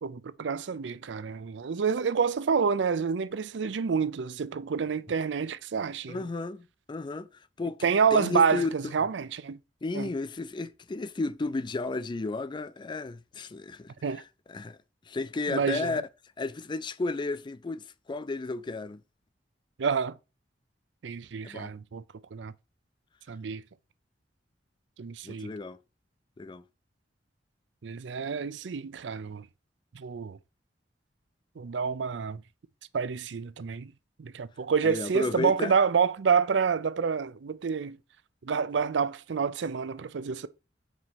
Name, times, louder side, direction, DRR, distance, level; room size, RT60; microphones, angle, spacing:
voice 1, 0.0-6.2 7.8-9.6 9.9-10.1 14.0-14.2 15.5-15.9 19.8-20.2 21.0-22.0 22.3-22.5 23.3-23.6 25.0-25.5 27.8-29.4 29.9-30.4 31.6-32.4 32.9-33.9 34.2-38.0 38.4-40.5, right 6 dB, 80° right, 0.5 m, -28 dB
voice 2, 6.1-8.8 9.8-14.2 14.5-14.8 15.1-16.0 16.4-19.0 21.4-21.7 25.2-25.8 26.4-26.6 34.8-35.7, left 3 dB, 25° left, 0.4 m, -33 dB
4.8 x 4.1 x 5.7 m
head